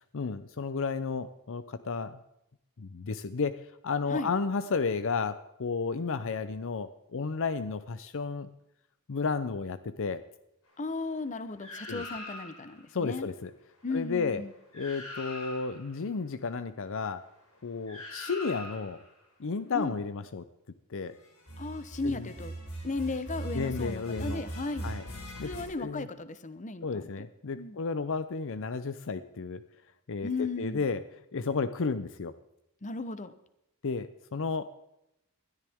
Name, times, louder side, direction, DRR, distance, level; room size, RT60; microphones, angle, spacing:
voice 1, 0.1-2.2 2.8-8.5 9.1-10.2 11.9-12.0 12.9-13.5 13.9-14.4 14.7-17.3 17.6-19.0 19.4-20.5 20.9-21.2 22.0-22.3 23.5-24.4 24.8-25.0 25.4-25.5 25.8-26.1 26.8-29.6 30.1-31.0 31.3-32.3 33.8-34.7, left 4 dB, 65° left, 13 dB, 0.6 m, -32 dB
voice 2, 10.8-13.3 13.8-14.5 19.7-19.9 21.6-22.5 22.8-24.9 25.4-27.1 27.5-27.8 30.2-30.8 32.8-33.3, left 3 dB, 35° left, 13 dB, 0.9 m, -35 dB
sound 1, 11.6-12.7 14.4-14.5 14.7-15.9 17.9-19.0 21.4-25.6, right 1 dB, 85° left, 7.2 m, -40 dB
20.5 x 13.0 x 3.6 m, 0.84 s
head